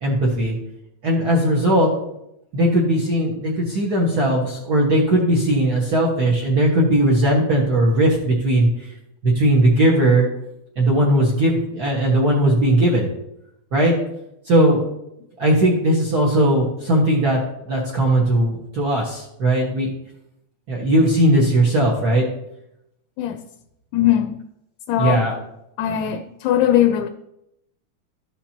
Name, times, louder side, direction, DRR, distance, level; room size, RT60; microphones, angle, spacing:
voice 1, 0.0-0.6 1.0-1.9 2.5-8.7 9.2-10.3 10.8-13.1 13.7-13.9 14.5-14.8 15.4-17.4 17.7-19.9 20.7-22.2 25.0-25.4, right 1 dB, 50° right, -3 dB, 1.1 m, -18 dB
voice 2, 23.9-24.4 24.9-25.2 25.8-27.1, left 11 dB, 80° left, 8 dB, 1.9 m, -19 dB
13.0 x 5.8 x 2.9 m, 0.83 s
omnidirectional pair, 3.5 m